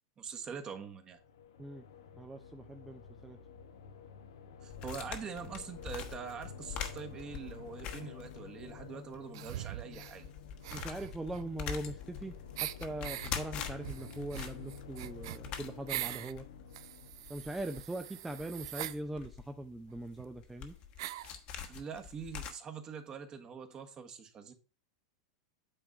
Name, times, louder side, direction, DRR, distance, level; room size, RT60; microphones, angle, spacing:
voice 1, 0.2-1.2 4.6-10.3 21.7-24.5, right 6 dB, 30° right, 1.4 m, -44 dB
sound 1, 1.0-18.0, left 6 dB, 80° left, 1.1 m, -50 dB
voice 2, 2.1-3.4 10.7-12.3 12.6-16.4 17.3-20.7, right 1 dB, 10° right, 0.7 m, -41 dB
sound 2, 4.7-8.8 9.1-9.2 9.7-22.5, left 8 dB, 45° left, 1.4 m, -44 dB
sound 3, 9.3-10.2 10.6-12.2 12.6-13.3 13.8-16.3 16.7-19.0 19.9-20.0 20.2-20.3 21.0-21.4, right 14 dB, 65° right, 0.4 m, -42 dB
9.0 x 3.6 x 5.4 m
hypercardioid pair, 105°, 3 cm